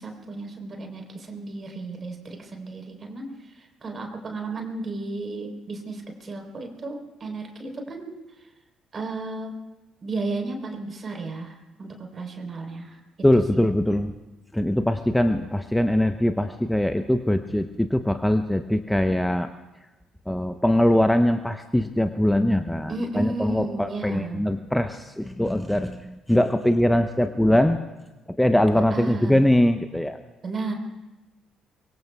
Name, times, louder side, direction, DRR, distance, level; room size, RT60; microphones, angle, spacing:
voice 1, 0.0-3.3 3.5-8.1 8.9-9.5 10.0-13.0 13.5-13.6 22.9-24.4 28.9-29.4 30.4-30.7, right 3 dB, 35° right, 3 dB, 3.8 m, -33 dB
voice 2, 13.2-14.1 14.5-19.5 20.3-27.8 28.4-30.2, left 1 dB, 5° left, 9 dB, 0.8 m, -22 dB
24.0 x 23.5 x 2.3 m, 1.1 s
figure-of-eight pair, 45°, 0 cm